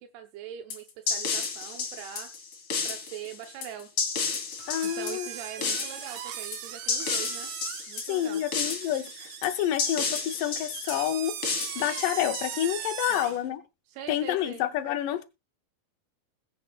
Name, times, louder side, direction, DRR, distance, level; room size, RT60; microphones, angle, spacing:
voice 1, 0.0-2.3 2.8-3.9 4.8-7.5 7.9-8.4 13.1-13.4 13.9-14.7, right 10 dB, 85° right, 3.0 m, -42 dB
sound 1, 0.7-12.9, left 5 dB, 40° left, 2.3 m, -32 dB
sound 2, 4.6-13.4, right 10 dB, 70° right, 2.3 m, -39 dB
voice 2, 4.7-5.3 5.6-5.7 8.1-11.4 11.8-13.6 14.1-15.2, left 12 dB, 75° left, 2.1 m, -28 dB
21.0 x 7.7 x 2.4 m
omnidirectional pair, 4.5 m